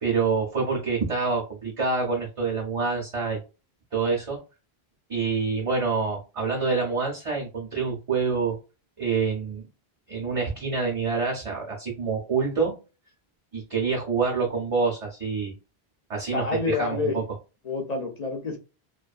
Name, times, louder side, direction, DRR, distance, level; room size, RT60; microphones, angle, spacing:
voice 1, 0.0-3.4 3.9-4.4 5.1-8.6 9.0-9.7 10.1-12.7 13.5-15.5 16.1-17.2, right 4 dB, 40° right, -2 dB, 0.6 m, -26 dB
voice 2, 16.3-17.2 17.7-18.6, left 4 dB, 50° left, 3 dB, 0.5 m, -28 dB
2.5 x 2.3 x 2.3 m, 0.31 s
omnidirectional pair, 1.1 m